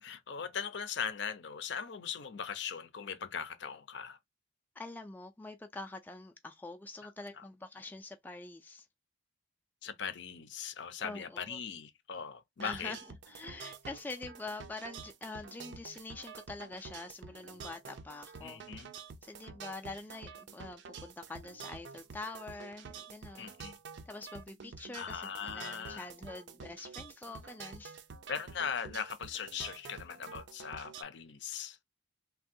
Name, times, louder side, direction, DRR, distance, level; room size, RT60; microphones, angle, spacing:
voice 1, 0.0-4.2 7.4-7.5 9.8-13.0 18.4-18.9 23.4-23.8 24.9-26.1 28.3-31.8, left 7 dB, 65° left, 0.5 m, -39 dB
voice 2, 4.8-8.9 11.0-11.6 12.6-13.0 13.3-18.6 19.2-23.5 24.1-28.0, left 2 dB, 10° left, 0.3 m, -45 dB
sound 1, 12.6-31.0, right 5 dB, 65° right, 0.5 m, -49 dB
3.4 x 2.2 x 2.6 m
head